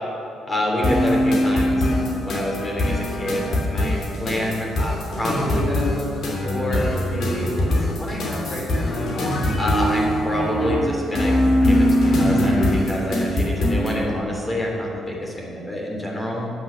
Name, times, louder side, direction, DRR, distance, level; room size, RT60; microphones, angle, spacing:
voice 1, 0.5-11.3 11.6-16.5, left 1 dB, 25° left, -1 dB, 3.2 m, -27 dB
sound 1, 0.8-14.0, left 1 dB, 65° left, 2.6 m, -22 dB
10.5 x 7.7 x 6.8 m, 2.5 s
cardioid pair, 90°, 0 cm